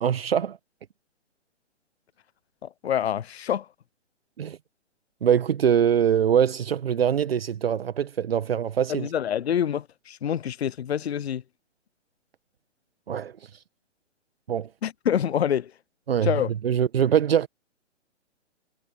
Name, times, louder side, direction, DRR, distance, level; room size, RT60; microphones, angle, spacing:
voice 1, 0.0-0.6 4.4-4.6 5.2-9.1 13.1-13.5 14.5-14.7 16.1-17.5, right 8 dB, 55° right, 1.3 m, -23 dB
voice 2, 2.6-3.7 8.9-11.4 14.8-15.7 16.2-16.5, left 9 dB, 60° left, 0.7 m, -26 dB
figure-of-eight pair, 130°, 36 cm